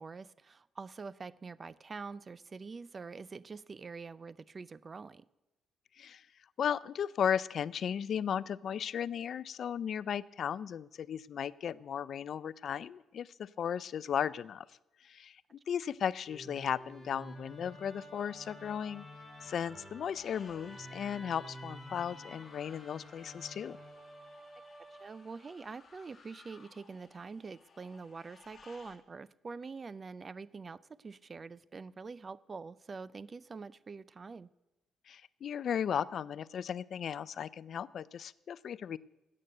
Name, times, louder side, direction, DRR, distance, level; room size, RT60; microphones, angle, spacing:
voice 1, 0.0-5.3 24.9-34.5, right 4 dB, 35° right, 20 dB, 0.4 m, -45 dB
voice 2, 6.6-14.7 15.0-19.1 19.4-23.8 35.1-39.0, left 8 dB, 60° left, 19 dB, 0.4 m, -36 dB
Musical instrument, 16.3-25.5, equal, 5° left, 2.6 m, -50 dB
sound 1, 20.1-29.0, left 5 dB, 35° left, 1.9 m, -60 dB
13.0 x 8.6 x 7.8 m, 1.0 s
cardioid pair, 90°, 0 cm